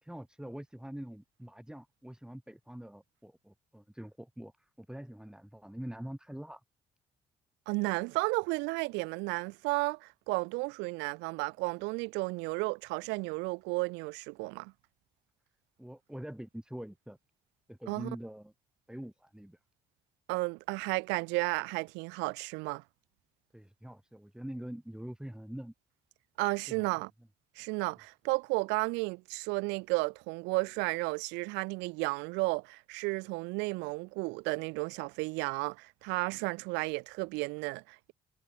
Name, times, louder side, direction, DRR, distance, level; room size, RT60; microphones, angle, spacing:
voice 1, 0.0-6.6 15.8-17.2 17.7-18.5 18.9-19.6 23.5-25.7 26.7-26.9, equal, 5° right, 2.6 m, -44 dB
voice 2, 7.7-14.7 17.9-18.1 20.3-22.8 26.4-27.1 27.6-38.1, right 27 dB, 75° right, 0.8 m, -33 dB
hypercardioid pair, 45°, 18 cm